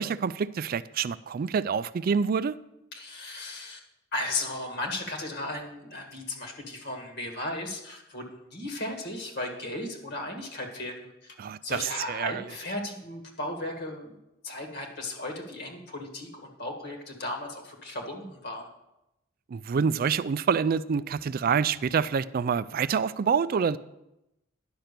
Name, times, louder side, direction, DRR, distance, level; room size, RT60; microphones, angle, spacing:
voice 1, 0.0-2.6 11.4-11.8 12.1-12.3 19.5-23.8, right 6 dB, 45° right, 0.3 m, -27 dB
voice 2, 2.9-3.8 4.1-11.3 11.6-14.2 14.4-18.7, left 2 dB, 50° left, 1.6 m, -36 dB
10.5 x 5.9 x 6.7 m
head